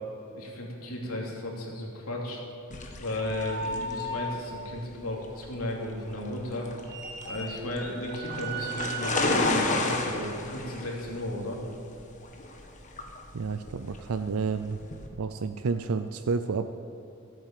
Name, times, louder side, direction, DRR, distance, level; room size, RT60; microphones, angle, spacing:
voice 1, 0.3-2.4 3.0-6.7 7.2-11.6, left 1 dB, 85° left, -2 dB, 2.9 m, -34 dB
sound 1, 2.7-15.1, left 2 dB, 35° left, 1.4 m, -33 dB
sound 2, 3.2-4.5 6.8-9.4, right 2 dB, 55° right, 1.6 m, -36 dB
voice 2, 13.3-14.8 15.2-16.7, right 4 dB, 85° right, 9 dB, 0.5 m, -30 dB
14.0 x 8.9 x 7.5 m, 2.7 s
head